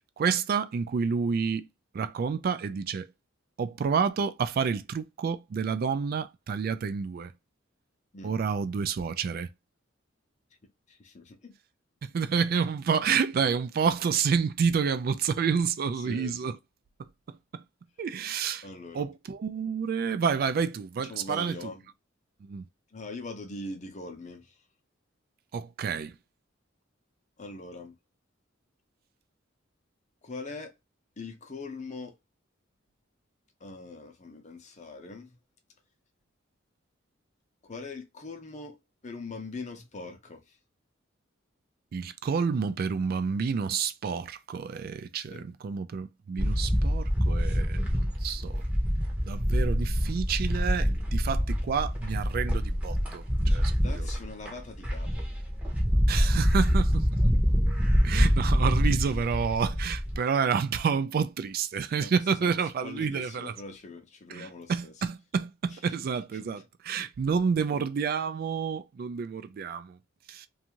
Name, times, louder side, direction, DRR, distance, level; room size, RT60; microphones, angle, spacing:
voice 1, 0.0-1.7 1.9-3.1 3.6-7.3 8.2-9.5 12.0-16.6 17.0-17.6 18.0-18.7 18.9-21.7 22.4-22.6 25.5-26.2 41.9-48.6 49.3-54.1 56.1-57.1 58.0-63.6 64.3-70.0 70.3-70.5, right 6 dB, 50° right, 0.3 m, -29 dB
voice 2, 10.9-11.5 16.0-16.5 18.6-19.1 21.1-21.8 22.9-24.5 27.4-27.9 30.2-30.7 31.2-32.1 33.6-35.3 37.6-38.8 39.0-40.4 45.3-45.5 53.8-55.3 62.0-62.1 62.4-64.9, left 3 dB, 35° left, 0.6 m, -42 dB
sound 1, 46.4-60.2, equal, 5° right, 0.7 m, -26 dB
2.6 x 2.4 x 2.8 m
head